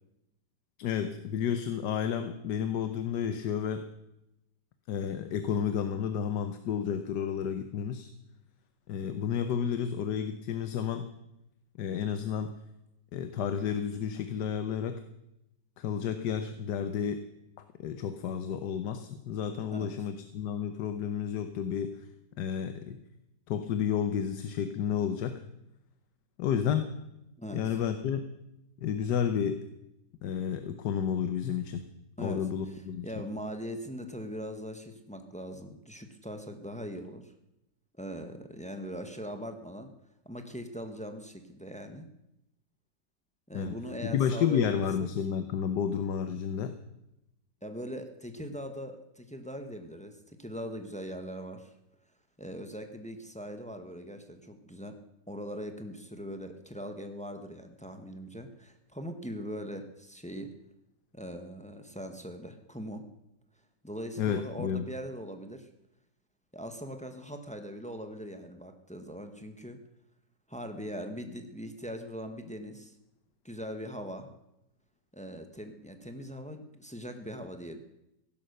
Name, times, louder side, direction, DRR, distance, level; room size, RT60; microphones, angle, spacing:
voice 1, 0.8-3.9 4.9-8.1 8.9-11.1 11.8-12.6 13.1-15.0 15.8-17.3 17.8-22.0 22.4-23.0 23.5-25.4 26.4-26.9 27.5-28.3 28.8-29.7 30.2-31.8 32.2-33.1 43.5-46.8 64.2-64.9, left 8 dB, 75° left, 9 dB, 1.4 m, -31 dB
voice 2, 33.0-37.3 38.0-39.9 40.2-42.1 43.5-45.1 47.6-51.7 52.4-55.0 55.3-60.5 61.1-63.0 63.8-65.7 66.5-69.8 70.5-72.9 73.4-74.3 75.1-77.8, equal, 5° left, 6 dB, 0.8 m, -41 dB
15.5 x 11.5 x 6.6 m, 0.89 s
omnidirectional pair, 1.9 m